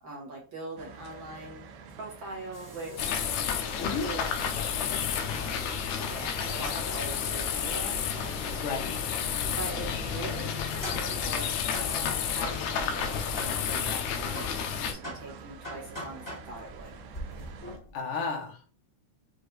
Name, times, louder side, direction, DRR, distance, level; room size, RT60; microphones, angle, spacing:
voice 1, 0.0-1.6 1.9-3.2 3.8-4.3 5.3-5.7 5.9-8.0 9.6-17.0, right 2 dB, 55° right, -2 dB, 1.5 m, -42 dB
sound 1, 0.8-17.8, right 5 dB, 85° right, 2.1 m, -47 dB
sound 2, 2.5-8.6 10.5-14.1 14.3-18.0, equal, 10° left, 1.3 m, -45 dB
sound 3, 3.0-14.9, left 7 dB, 80° left, 1.9 m, -31 dB
voice 2, 8.6-9.0 17.9-18.7, left 5 dB, 60° left, 1 dB, 1.8 m, -32 dB
6.3 x 2.6 x 3.2 m, 0.36 s
omnidirectional pair, 3.4 m